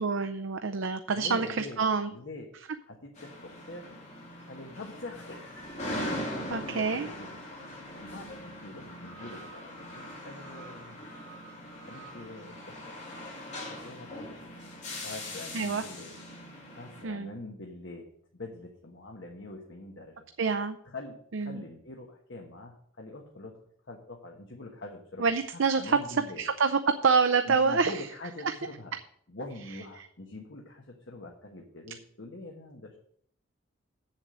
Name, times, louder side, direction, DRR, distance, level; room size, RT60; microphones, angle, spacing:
voice 1, 0.0-2.1 6.5-7.1 15.5-15.8 17.0-17.3 20.4-20.8 21.3-21.6 25.2-28.1 28.4-28.5, right 5 dB, 75° right, 8 dB, 0.6 m, -27 dB
voice 2, 1.1-2.5 2.9-3.9 4.5-6.0 6.3-7.3 8.0-11.0 11.9-12.9 13.7-14.3 15.0-16.1 16.7-20.3 20.8-23.6 23.9-25.3 25.7-26.4 27.5-28.9 29.3-33.0, left 2 dB, 65° left, 1 dB, 1.3 m, -44 dB
sound 1, 3.1-17.0, left 1 dB, 35° left, 2.8 m, -41 dB
8.1 x 7.3 x 6.2 m, 0.64 s
head